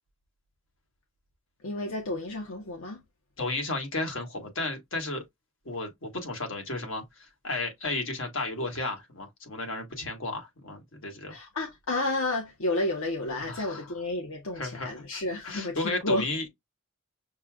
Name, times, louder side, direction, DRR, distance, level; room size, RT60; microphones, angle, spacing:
voice 1, 1.6-3.0 11.3-16.2, left 2 dB, 90° left, 0.9 m, -31 dB
voice 2, 3.4-5.2 5.6-11.4 13.4-13.9 14.5-16.5, left 2 dB, 70° left, 1.5 m, -33 dB
6.6 x 2.2 x 2.2 m
head